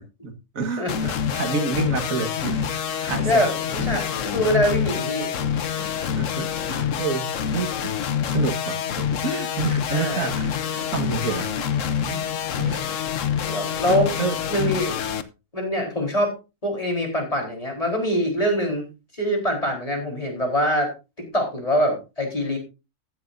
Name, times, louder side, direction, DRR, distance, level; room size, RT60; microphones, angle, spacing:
voice 1, 0.2-3.4 3.8-3.9 4.8-4.9 6.2-7.9 8.2-11.5 12.1-12.3 12.6-12.8 13.3-13.4 13.9-14.4, right 4 dB, 85° right, 7 dB, 2.0 m, -29 dB
sound 1, 0.9-15.2, left 8 dB, 70° left, 1.2 m, -26 dB
voice 2, 3.2-5.3 9.9-10.3 13.5-14.1 14.5-15.0 15.5-16.3 16.6-18.9 19.1-20.9 21.3-22.6, equal, 25° left, 0 dB, 4.3 m, -24 dB
15.0 x 10.5 x 2.7 m, 0.29 s
omnidirectional pair, 1.4 m